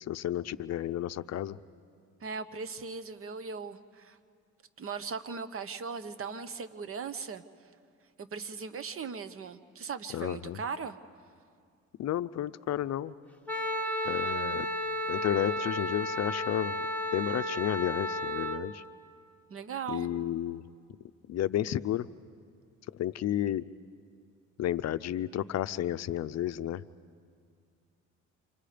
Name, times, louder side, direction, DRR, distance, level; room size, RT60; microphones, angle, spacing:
voice 1, 0.0-1.6 10.1-10.6 12.0-13.1 14.0-14.7 15.1-16.8 17.1-18.8 19.9-20.6 21.3-22.1 23.0-23.6 24.6-26.8, left 12 dB, 60° left, 13 dB, 0.6 m, -32 dB
voice 2, 2.2-4.2 4.8-7.4 8.2-11.0 19.5-20.1, right 5 dB, 45° right, 13 dB, 1.0 m, -38 dB
Wind instrument woodwind instrument, 13.5-18.6, equal, 5° left, 1.4 m, -33 dB
29.5 x 26.0 x 5.1 m, 2.2 s
cardioid pair, 90°, 30 cm